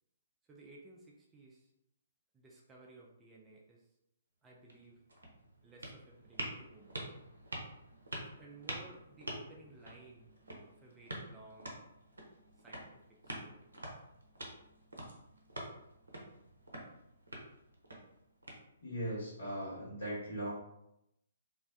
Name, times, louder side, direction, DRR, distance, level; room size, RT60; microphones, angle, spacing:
voice 1, 0.4-1.7 2.3-4.0 4.4-5.0 5.6-7.0 8.4-10.3 10.7-11.7 12.6-13.7, right 2 dB, 15° right, -3 dB, 0.3 m, -57 dB
sound 1, 4.5-19.1, right 1 dB, 70° right, 0.6 m, -47 dB
voice 2, 18.8-20.5, right 1 dB, 60° left, -6 dB, 1.3 m, -39 dB
2.4 x 2.1 x 2.5 m, 0.82 s
figure-of-eight pair, 125°, 0 cm